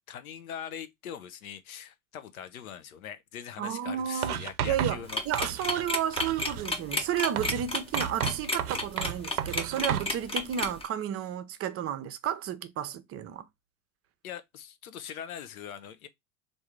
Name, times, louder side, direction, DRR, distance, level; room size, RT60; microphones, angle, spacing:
voice 1, 0.1-5.2 14.2-16.1, left 9 dB, 75° left, 0.8 m, -42 dB
voice 2, 3.6-13.5, right 9 dB, 35° right, 0.6 m, -32 dB
Writing, 4.2-5.9 6.2-6.7 7.4-10.1, right 10 dB, 85° right, 0.5 m, -33 dB
sound 1, 5.1-10.9, left 2 dB, 15° left, 0.9 m, -31 dB
3.6 x 2.6 x 4.5 m
hypercardioid pair, 80°, 43 cm